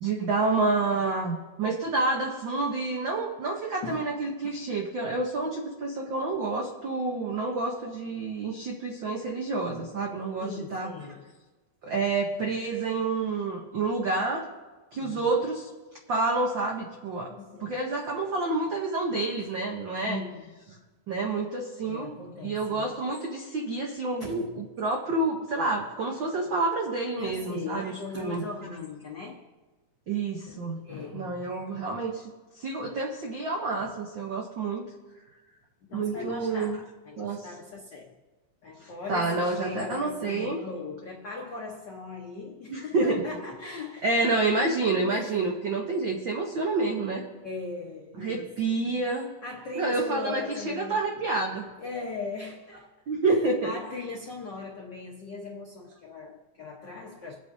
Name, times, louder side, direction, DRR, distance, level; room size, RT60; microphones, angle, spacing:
voice 1, 0.0-10.9 11.8-14.5 14.9-15.7 16.1-17.3 17.6-20.2 21.1-28.4 30.1-30.8 31.1-32.3 32.5-34.9 35.9-36.8 37.2-37.4 38.8-40.7 42.7-43.2 44.0-47.2 48.2-49.3 49.7-51.7 53.1-53.7, right 3 dB, 80° right, 1.0 m, -28 dB
voice 2, 10.4-11.2 14.9-15.3 17.3-17.8 20.0-20.6 21.8-22.9 24.3-24.4 27.2-29.5 30.5-30.6 30.8-31.5 33.8-33.9 35.9-38.1 38.6-44.5 45.1-45.4 47.4-48.8 49.4-51.1 51.8-52.9 53.2-57.3, left 4 dB, 75° left, 0.9 m, -39 dB
24.5 x 8.7 x 2.7 m
omnidirectional pair, 3.5 m